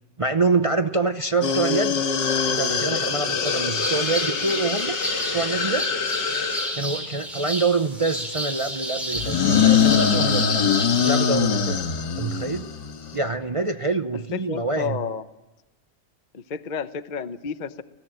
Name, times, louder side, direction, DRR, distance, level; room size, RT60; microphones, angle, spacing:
voice 1, 0.2-2.0 2.5-5.0 5.3-5.9 6.7-10.7 11.0-11.9 12.2-12.7 13.1-15.0, right 3 dB, 50° right, 8 dB, 0.3 m, -25 dB
sound 1, 1.4-6.8 9.2-13.2, left 7 dB, 90° left, 2.2 m, -23 dB
sound 2, 3.4-11.3, equal, ahead, 5.3 m, -32 dB
voice 2, 14.1-15.2 16.3-17.8, left 6 dB, 40° left, 11 dB, 0.7 m, -31 dB
25.0 x 19.0 x 7.8 m, 1.1 s
omnidirectional pair, 1.9 m